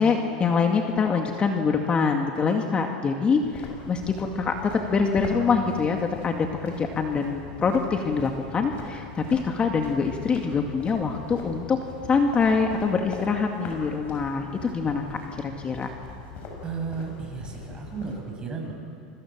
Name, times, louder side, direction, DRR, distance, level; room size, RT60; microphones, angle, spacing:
voice 1, 0.0-11.8 12.1-15.9, left 5 dB, 25° left, 3 dB, 2.2 m, -25 dB
sound 1, 3.4-18.2, left 4 dB, 45° left, 7.5 m, -41 dB
voice 2, 16.6-18.7, right 5 dB, 20° right, 1 dB, 7.2 m, -34 dB
29.5 x 24.5 x 7.5 m, 2.4 s
hypercardioid pair, 105°, 4 cm